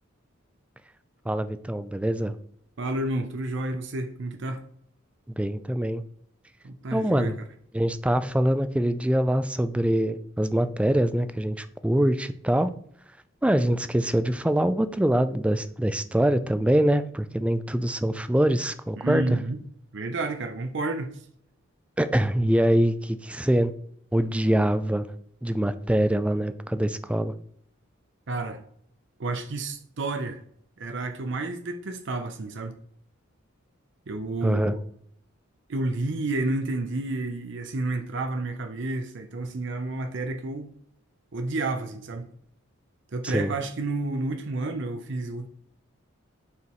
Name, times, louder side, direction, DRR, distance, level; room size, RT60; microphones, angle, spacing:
voice 1, 1.3-2.4 5.4-6.0 6.9-7.4 7.7-12.7 13.4-19.4 22.0-23.7 24.1-25.1 25.4-27.3 34.4-34.7 43.2-43.5, right 1 dB, 5° right, 0.3 m, -24 dB
voice 2, 2.8-4.6 6.6-7.3 19.0-19.6 19.9-21.2 28.3-28.6 29.2-30.4 30.8-32.8 34.1-34.8 35.7-40.7 41.3-42.3 43.1-45.5, right 2 dB, 60° right, 0.6 m, -30 dB
8.2 x 5.0 x 3.0 m
head